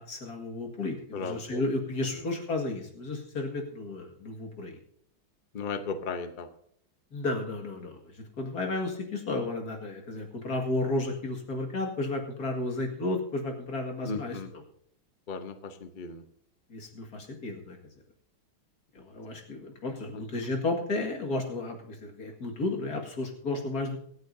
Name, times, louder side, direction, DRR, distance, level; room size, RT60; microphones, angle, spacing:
voice 1, 0.0-4.8 7.1-14.6 16.7-17.8 18.9-24.0, left 2 dB, 45° left, 1 dB, 2.3 m, -33 dB
voice 2, 1.1-1.6 5.5-6.5 14.0-14.5 15.3-16.2 20.1-20.2, left 4 dB, 70° left, 8 dB, 0.4 m, -36 dB
24.5 x 9.4 x 2.7 m, 0.68 s
omnidirectional pair, 2.3 m